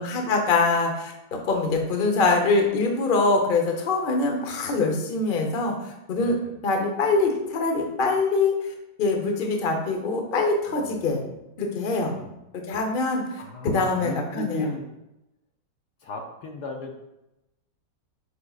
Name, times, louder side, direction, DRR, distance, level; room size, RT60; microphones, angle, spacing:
voice 1, 0.0-6.3 6.6-8.5 9.0-11.2 11.6-12.1 12.5-14.7, left 3 dB, 40° left, 2 dB, 0.8 m, -24 dB
voice 2, 6.2-6.6 10.7-11.4 12.0-12.4 13.4-14.9 16.0-16.9, left 2 dB, 65° left, 2 dB, 1.2 m, -36 dB
8.4 x 5.6 x 2.4 m, 0.91 s
omnidirectional pair, 2.1 m